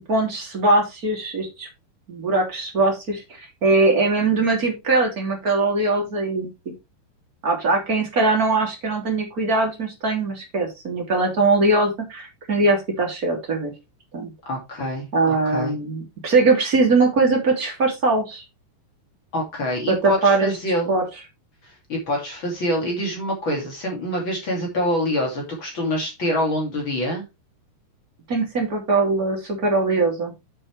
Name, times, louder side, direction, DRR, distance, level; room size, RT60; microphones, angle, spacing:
voice 1, 0.1-1.7 2.1-3.2 3.6-6.7 7.4-13.7 14.1-14.3 15.1-18.4 19.9-20.5 20.9-21.0 28.3-30.3, right 3 dB, 25° right, 1 dB, 2.8 m, -21 dB
voice 2, 14.4-15.8 19.3-21.0 21.9-27.2, equal, 35° left, 0 dB, 2.8 m, -25 dB
8.4 x 7.5 x 3.3 m, 0.25 s
omnidirectional pair, 4.8 m